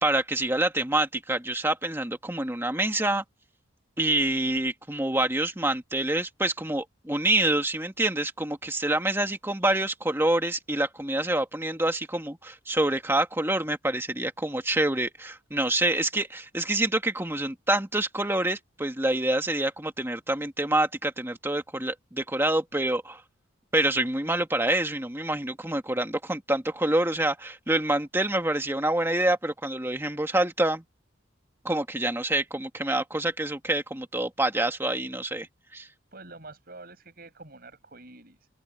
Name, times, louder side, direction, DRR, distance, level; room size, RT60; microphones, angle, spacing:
voice 1, 0.0-3.2 4.0-23.2 23.7-30.8 31.6-35.5 35.7-35.9, right 1 dB, 10° right, 1.9 m, -26 dB
voice 2, 36.1-38.5, right 3 dB, 50° right, 7.5 m, -47 dB
open air
head